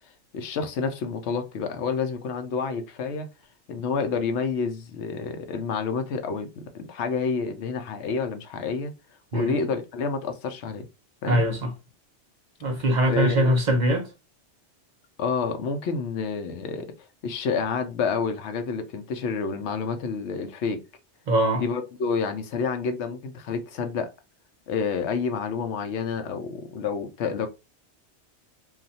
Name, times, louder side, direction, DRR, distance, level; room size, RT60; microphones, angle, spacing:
voice 1, 0.3-3.3 3.7-8.9 9.3-10.9 11.2-11.4 12.7-13.5 15.2-16.9 17.2-20.8 21.6-24.1 24.7-27.5, left 5 dB, 75° left, 0.9 m, -29 dB
voice 2, 11.3-11.7 12.6-14.1 21.3-21.6, right 1 dB, 45° right, 0.7 m, -22 dB
2.4 x 2.2 x 4.0 m
omnidirectional pair, 1.2 m